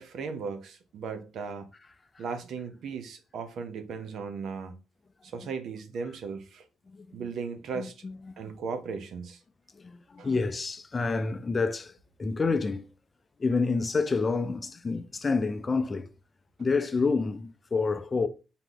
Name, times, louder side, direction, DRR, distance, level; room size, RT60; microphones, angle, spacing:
voice 1, 0.0-1.7 2.2-4.7 5.2-6.6 7.1-7.9 8.4-9.4 10.2-10.3, right 5 dB, 70° right, 0.7 m, -37 dB
voice 2, 6.9-7.3 7.7-8.5 9.7-12.9 13.4-16.1 16.6-18.3, left 4 dB, 30° left, 0.4 m, -29 dB
3.8 x 2.9 x 3.8 m
cardioid pair, 90°, 0 cm